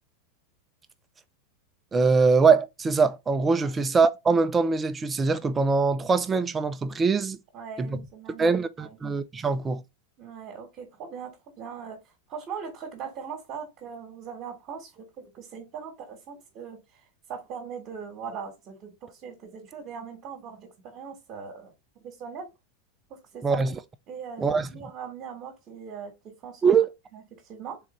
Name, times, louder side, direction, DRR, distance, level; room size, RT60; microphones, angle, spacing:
voice 1, 1.9-7.4 7.8-8.0 8.4-9.8 23.4-23.8 24.4-24.7 26.6-26.9, right 4 dB, 15° right, 0.4 m, -23 dB
voice 2, 7.5-9.0 10.2-12.0 12.3-16.8 17.3-21.7 22.0-22.5 23.1-23.6 24.1-26.6 27.1-27.8, right 6 dB, 35° right, 1.3 m, -40 dB
3.7 x 3.3 x 4.1 m
supercardioid pair, 150°, 0 cm